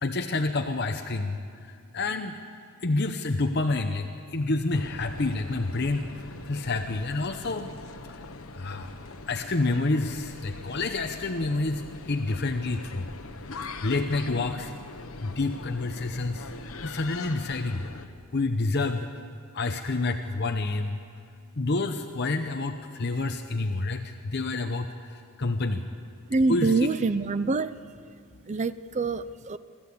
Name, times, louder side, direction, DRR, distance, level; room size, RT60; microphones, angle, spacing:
voice 1, 0.0-1.3 1.9-2.3 2.8-4.0 4.3-6.0 6.5-7.7 8.6-8.8 9.3-11.8 12.1-13.0 13.8-14.7 15.4-16.4 16.8-17.8 18.3-19.0 19.5-20.9 21.6-22.7 23.0-24.0 24.3-24.9 25.4-25.8 26.5-26.9, left 3 dB, 50° left, 5 dB, 0.8 m, -28 dB
sound 1, 4.7-18.1, left 3 dB, 75° left, 1.2 m, -42 dB
voice 2, 26.3-27.8 28.5-29.6, right 3 dB, 35° right, 14 dB, 0.5 m, -25 dB
24.0 x 14.0 x 8.5 m, 2.3 s
head